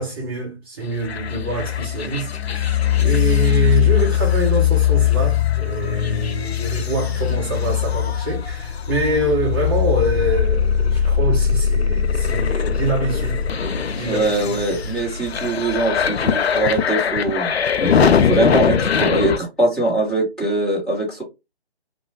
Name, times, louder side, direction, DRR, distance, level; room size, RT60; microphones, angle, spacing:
voice 1, 0.0-14.6 14.8-15.0, right 2 dB, 25° right, 0.6 m, -25 dB
sound 1, 1.0-19.4, left 8 dB, 80° left, 0.5 m, -20 dB
voice 2, 14.0-17.5 17.8-21.2, right 2 dB, 5° left, 1.0 m, -22 dB
3.0 x 2.2 x 2.7 m
figure-of-eight pair, 150°, 31 cm